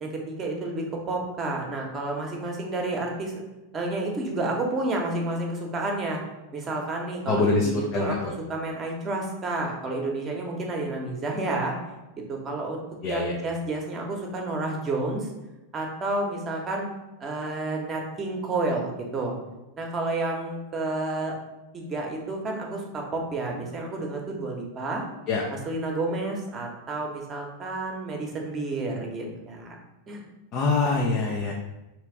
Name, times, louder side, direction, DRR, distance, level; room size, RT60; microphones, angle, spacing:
voice 1, 0.0-3.4 3.7-6.2 6.5-11.7 12.3-12.8 13.1-15.3 15.7-16.9 17.2-19.4 19.8-21.3 21.7-25.0 25.5-29.7 30.1-30.3, right 2 dB, 25° right, 1 dB, 0.9 m, -30 dB
voice 2, 7.3-8.3 13.0-13.3 25.3-25.4 30.5-31.5, left 3 dB, 40° left, -1 dB, 0.6 m, -24 dB
3.3 x 2.9 x 4.6 m, 0.99 s
figure-of-eight pair, 90°, 0 cm